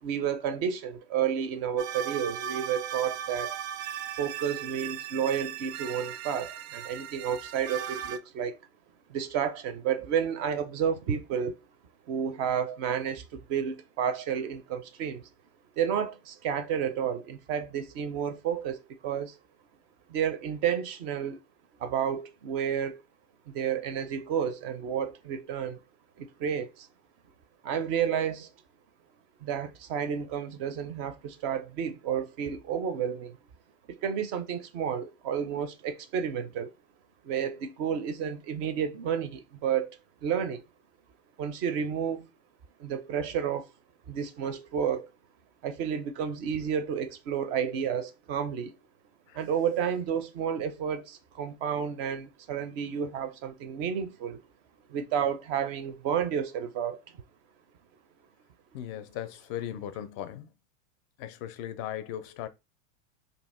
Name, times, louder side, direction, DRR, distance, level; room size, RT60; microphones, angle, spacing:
voice 1, 0.0-3.6 4.2-8.6 9.1-11.5 12.1-15.3 15.8-19.4 20.1-21.4 21.8-23.0 23.5-25.8 26.2-26.9 27.6-28.5 29.4-33.4 33.9-36.7 37.2-39.9 40.2-40.6 41.4-42.3 42.8-43.6 44.1-45.1 45.6-48.8 49.3-54.4 54.9-57.0, right 8 dB, 40° right, 0.5 m, -31 dB
sound 1, 1.8-8.2, right 10 dB, 85° right, 0.6 m, -37 dB
voice 2, 58.7-60.5 61.2-62.5, left 11 dB, 35° left, 0.4 m, -37 dB
2.8 x 2.6 x 4.2 m
supercardioid pair, 145°, 39 cm